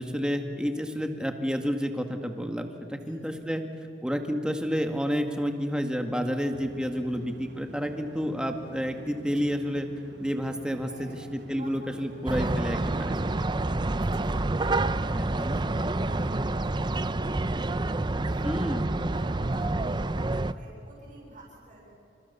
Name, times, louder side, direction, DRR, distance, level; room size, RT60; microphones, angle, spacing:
voice 1, 0.0-3.6 4.0-9.9 10.2-13.1 14.6-14.7 15.1-15.6 18.4-18.9, equal, 5° right, 5 dB, 2.0 m, -30 dB
voice 2, 3.0-3.7 7.1-7.3 10.8-11.2 11.6-12.3 12.6-22.0, right 1 dB, 50° right, -4 dB, 8.0 m, -50 dB
sound 1, 6.5-19.9, right 2 dB, 75° right, 1.2 m, -50 dB
sound 2, 12.3-20.5, right 2 dB, 25° right, 0.6 m, -28 dB
29.0 x 27.0 x 7.0 m, 2.6 s
head